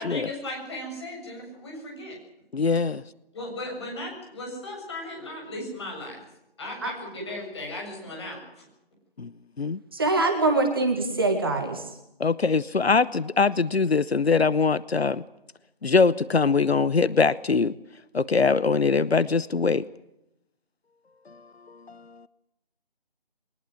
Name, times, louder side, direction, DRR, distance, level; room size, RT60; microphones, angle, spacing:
voice 1, 0.0-2.2 3.3-6.2 6.6-8.6, left 1 dB, 25° left, 7.2 m, -36 dB
voice 2, 2.5-2.9 9.2-9.3 9.6-9.8 12.2-15.2 15.8-17.8 18.1-19.8 21.3-21.4 21.7-22.3, left 4 dB, 80° left, 0.9 m, -22 dB
voice 3, 9.9-11.9, right 2 dB, 25° right, 1.8 m, -24 dB
22.0 x 20.5 x 7.7 m
figure-of-eight pair, 170°, 31 cm